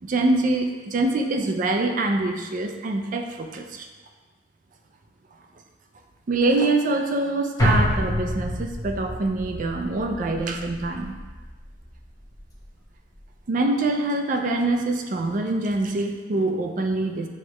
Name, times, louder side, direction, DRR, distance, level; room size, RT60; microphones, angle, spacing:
voice 1, 0.0-3.9 6.3-11.2 13.5-17.3, right 2 dB, 45° right, 4 dB, 0.4 m, -24 dB
sound 1, 7.6-12.0 12.4-12.5, left 1 dB, 20° left, 0.7 m, -27 dB
6.4 x 2.2 x 3.0 m, 1.3 s
head